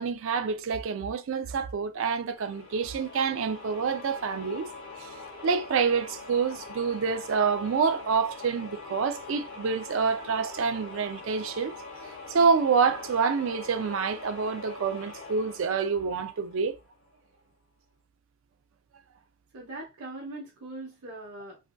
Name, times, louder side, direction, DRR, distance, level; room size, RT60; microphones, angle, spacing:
voice 1, 0.0-4.7 5.0-5.1 5.4-11.8 12.3-16.8, right 5 dB, 65° right, 0.3 m, -27 dB
sound 1, 2.4-17.0, left 3 dB, 60° left, 0.9 m, -43 dB
voice 2, 19.5-21.6, right 2 dB, 85° right, 0.9 m, -41 dB
3.3 x 2.6 x 2.2 m
head